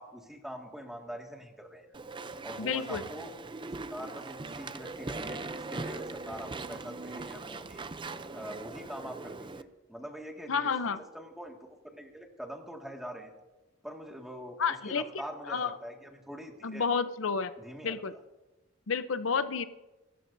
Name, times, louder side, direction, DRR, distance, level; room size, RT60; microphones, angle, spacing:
voice 1, 0.0-1.9 2.4-3.3 3.9-7.9 8.3-13.3 13.8-14.6 14.8-16.9 17.6-18.0, equal, ahead, 1 dB, 1.9 m, -44 dB
Walk footsteps / Chatter / Squeak, 1.9-9.6, right 3 dB, 25° right, 0.5 m, -40 dB
voice 2, 2.6-3.0 10.5-11.0 14.6-15.1 15.5-15.7 16.6-17.5 17.8-18.1 18.9-19.7, left 5 dB, 75° left, 12 dB, 0.6 m, -30 dB
26.5 x 13.5 x 2.6 m, 1.1 s
head